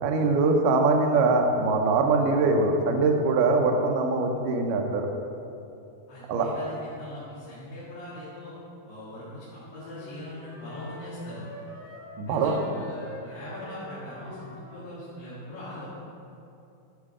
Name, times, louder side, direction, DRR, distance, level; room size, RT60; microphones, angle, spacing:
voice 1, 0.0-5.1 6.3-6.5 12.2-12.5, right 3 dB, 80° right, 2 dB, 1.9 m, -23 dB
voice 2, 6.1-8.5 8.9-11.5 12.3-15.9, left 1 dB, 75° left, -11 dB, 4.1 m, -41 dB
sound 1, 9.7-14.8, left 1 dB, 55° left, 3.9 m, -45 dB
13.5 x 5.1 x 4.9 m, 2.7 s
omnidirectional pair, 4.7 m